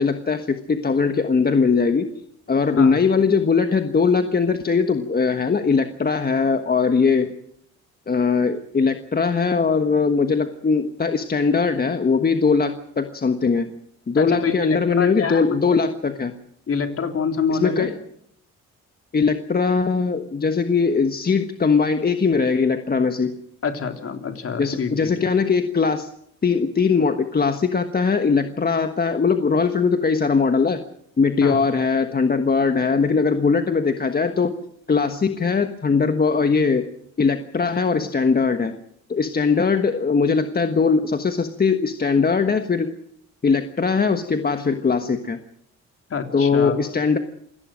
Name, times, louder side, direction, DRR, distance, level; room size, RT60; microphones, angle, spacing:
voice 1, 0.0-2.1 2.5-7.3 8.1-13.7 14.1-16.3 17.5-18.0 19.1-23.4 24.6-26.1 26.4-30.9 31.2-34.6 34.9-36.9 37.2-38.8 39.1-42.9 43.4-45.4 46.3-47.2, left 5 dB, 30° left, 8 dB, 1.4 m, -20 dB
voice 2, 14.2-15.6 16.7-17.9 23.6-25.1 31.4-31.6 46.1-46.8, left 5 dB, 50° left, 5 dB, 3.5 m, -26 dB
28.0 x 18.0 x 6.4 m, 0.70 s
cardioid pair, 90°, 30 cm